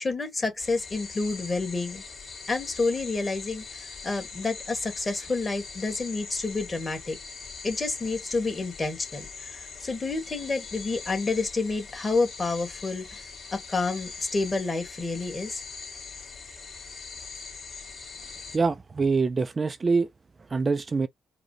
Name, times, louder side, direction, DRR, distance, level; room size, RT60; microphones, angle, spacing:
voice 1, 0.0-2.0 2.5-7.2 7.6-13.2 13.5-15.6, left 3 dB, 25° left, 1.7 m, -29 dB
sound 1, 0.6-18.6, left 4 dB, 50° left, 2.2 m, -42 dB
voice 2, 18.5-20.1 20.5-21.1, right 4 dB, 30° right, 0.3 m, -24 dB
4.8 x 2.2 x 2.8 m
cardioid pair, 90°, 0 cm